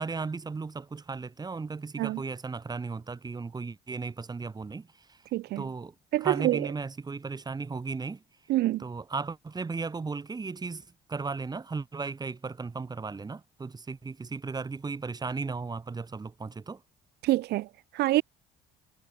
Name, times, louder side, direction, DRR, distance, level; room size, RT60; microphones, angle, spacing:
voice 1, 0.0-5.2 5.6-5.9 6.2-8.2 8.8-10.8 11.1-16.8, right 4 dB, 25° right, 5.4 m, -35 dB
voice 2, 5.3-5.7 6.1-6.7 8.5-8.8 17.2-17.7 17.9-18.2, right 16 dB, 80° right, 3.6 m, -26 dB
cardioid pair, 110°, 17 cm